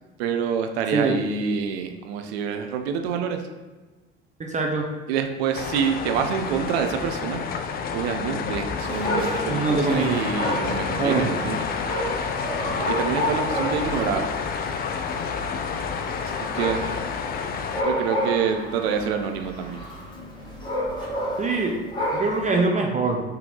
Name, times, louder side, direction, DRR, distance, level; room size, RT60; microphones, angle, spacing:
voice 1, 0.2-3.4 5.1-7.4 7.9-11.6 12.9-14.3 16.2-16.8 17.8-19.8, right 7 dB, 75° right, 6 dB, 0.5 m, -27 dB
voice 2, 4.4-4.9 9.5-10.2 11.0-11.3 21.4-21.8 22.1-23.2, right 3 dB, 25° right, 1 dB, 0.6 m, -23 dB
sound 1, 5.5-17.8, left 6 dB, 30° left, 0.4 m, -29 dB
Dog, 8.8-22.6, equal, 15° left, 1.5 m, -30 dB
3.8 x 2.8 x 3.7 m, 1.2 s
hypercardioid pair, 75°, 32 cm